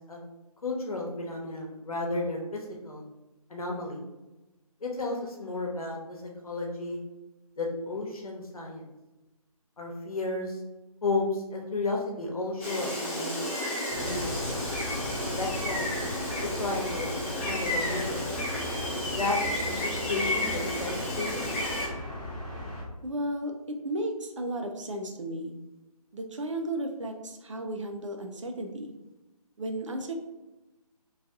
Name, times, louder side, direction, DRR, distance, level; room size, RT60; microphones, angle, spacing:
voice 1, 0.6-3.0 3.5-4.0 4.8-6.2 6.4-7.0 7.6-8.9 9.8-10.6 11.0-13.3 13.9-14.6 15.3-15.9 16.4-18.2 18.9-19.4 19.7-21.4, left 2 dB, 70° left, 0 dB, 1.0 m, -33 dB
Gull seagull, 12.6-21.9, left 1 dB, 20° left, 0.7 m, -32 dB
sound 1, 13.9-22.8, left 1 dB, 10° right, 0.4 m, -38 dB
voice 2, 23.0-23.5 23.8-25.5 26.1-28.9 29.6-30.1, right 1 dB, 55° right, 5 dB, 0.6 m, -34 dB
3.1 x 2.7 x 3.5 m, 1.0 s
figure-of-eight pair, 165°, 19 cm